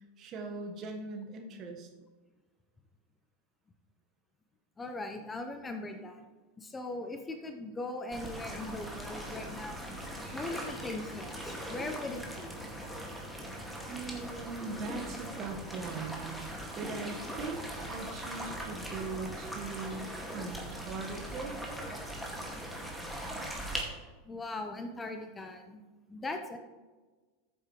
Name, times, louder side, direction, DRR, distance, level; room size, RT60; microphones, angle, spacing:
voice 1, 0.2-1.9 13.9-21.5, right 4 dB, 40° right, 3 dB, 1.5 m, -40 dB
voice 2, 4.8-6.3 6.6-9.9 10.3-12.5 24.2-25.8 26.1-26.6, left 2 dB, 20° left, 5 dB, 0.9 m, -40 dB
sound 1, 8.1-23.8, right 1 dB, ahead, 2.2 m, -40 dB
14.0 x 7.5 x 3.3 m, 1.3 s
hypercardioid pair, 85°, 0 cm